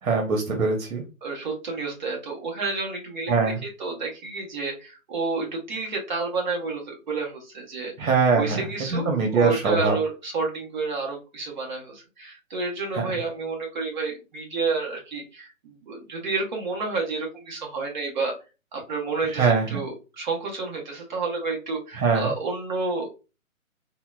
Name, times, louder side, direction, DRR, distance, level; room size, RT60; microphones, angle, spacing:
voice 1, 0.0-1.0 3.3-3.6 8.0-10.0 12.9-13.2 19.3-19.8 21.9-22.3, right 4 dB, 80° right, 2 dB, 1.0 m, -23 dB
voice 2, 1.2-3.3 3.6-7.9 8.3-18.3 18.7-23.1, right 4 dB, 35° right, 0 dB, 0.9 m, -30 dB
3.7 x 2.2 x 2.4 m, 0.31 s
hypercardioid pair, 160°, 41 cm